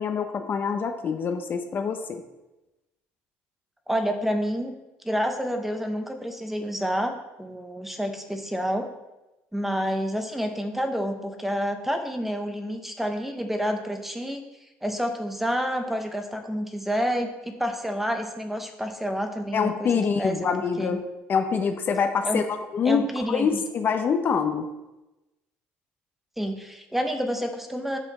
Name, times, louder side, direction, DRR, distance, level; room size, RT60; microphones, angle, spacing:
voice 1, 0.0-2.2 19.5-21.0 21.3-22.4 22.7-24.7, left 6 dB, 45° left, 6 dB, 0.8 m, -25 dB
voice 2, 3.9-4.7 5.0-7.1 7.4-8.9 9.5-14.4 14.8-19.9 20.2-21.0 22.2-22.4 22.8-23.6 26.4-28.0, equal, 5° right, 5 dB, 1.0 m, -29 dB
8.3 x 5.6 x 4.2 m, 1.0 s
cardioid pair, 100°, 5 cm